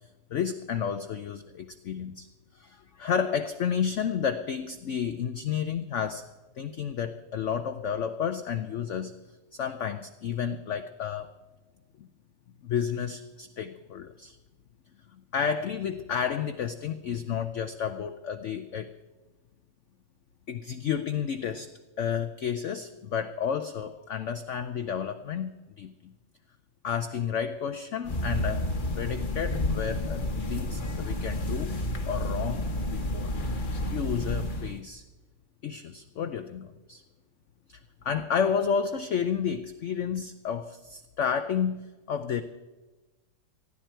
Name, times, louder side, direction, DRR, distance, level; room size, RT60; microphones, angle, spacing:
voice 1, 0.3-2.3 2.5-6.3 6.6-9.1 9.5-11.3 12.0-12.1 12.6-14.4 15.3-18.9 20.5-21.7 22.0-26.1 26.8-28.7 29.0-31.7 32.1-33.3 33.9-35.0 35.6-37.0 37.7-37.8 38.0-42.4, left 7 dB, 75° left, 10 dB, 0.6 m, -31 dB
sound 1, 28.0-34.8, left 1 dB, 35° left, 0.9 m, -30 dB
19.5 x 13.5 x 4.5 m, 1.2 s
omnidirectional pair, 2.0 m